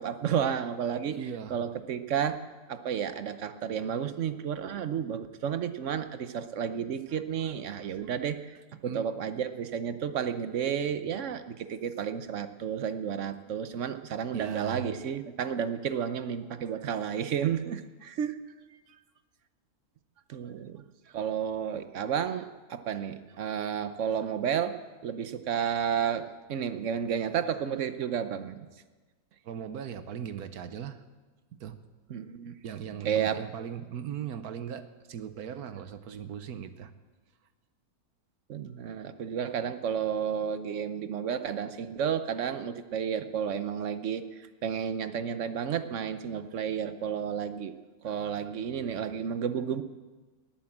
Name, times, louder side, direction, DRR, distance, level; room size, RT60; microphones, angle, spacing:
voice 1, 0.0-1.2 1.5-18.4 20.3-20.8 21.1-28.7 32.1-32.6 32.9-33.4 38.5-47.7 48.0-49.8, right 8 dB, 60° right, 11 dB, 1.1 m, -32 dB
voice 2, 1.1-1.6 8.8-9.1 14.3-14.9 29.4-31.0 31.6-31.8 32.6-36.9, right 8 dB, 80° right, 11 dB, 1.4 m, -38 dB
18.5 x 8.9 x 7.3 m, 1.3 s
omnidirectional pair, 1.6 m